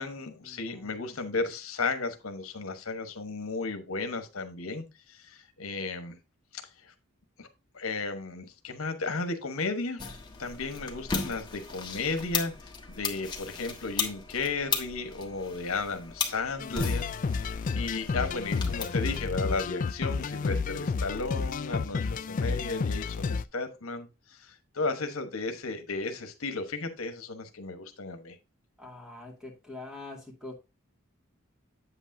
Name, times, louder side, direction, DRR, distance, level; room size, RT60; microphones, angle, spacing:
voice 1, 0.0-6.2 6.5-6.9 7.4-7.5 7.7-10.1 10.4-28.4, left 3 dB, 80° left, 1.2 m, -34 dB
voice 2, 0.5-0.9 28.8-30.5, left 2 dB, 5° right, 2.3 m, -44 dB
sound 1, 10.0-19.2, left 5 dB, 20° left, 1.4 m, -36 dB
sound 2, 16.6-23.4, left 4 dB, 40° left, 0.3 m, -31 dB
8.2 x 8.1 x 2.6 m
head